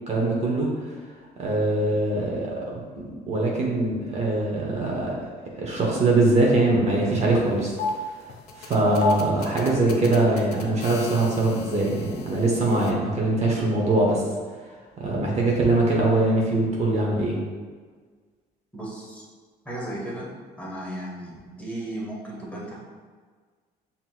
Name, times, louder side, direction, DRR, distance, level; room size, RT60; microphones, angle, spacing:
voice 1, 0.1-0.9 1.4-5.2 5.6-7.7 8.6-14.2 15.0-17.4, right 2 dB, 40° right, -3 dB, 0.9 m, -22 dB
sound 1, 7.1-7.2 7.6-12.9, left 3 dB, 70° left, 0.6 m, -33 dB
voice 2, 18.7-19.2 19.6-20.3 20.6-22.8, right 1 dB, 10° left, -5 dB, 1.1 m, -35 dB
5.9 x 2.8 x 2.3 m, 1.5 s
cardioid pair, 110°, 17 cm